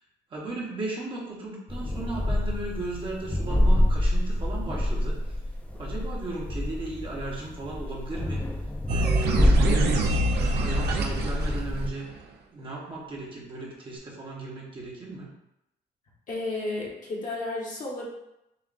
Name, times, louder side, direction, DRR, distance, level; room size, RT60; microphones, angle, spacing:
voice 1, 0.3-5.4 5.7-8.4 8.9-10.0 10.5-12.1 12.5-15.3, right 2 dB, 30° right, -3 dB, 0.9 m, -36 dB
sound 1, 1.7-11.9, left 1 dB, 10° left, 0.4 m, -27 dB
sound 2, 8.9-12.2, right 2 dB, 65° right, 0.6 m, -26 dB
voice 2, 16.3-18.1, left 2 dB, 45° left, -4 dB, 1.2 m, -32 dB
7.0 x 2.5 x 2.5 m, 0.86 s
cardioid pair, 165°, 18 cm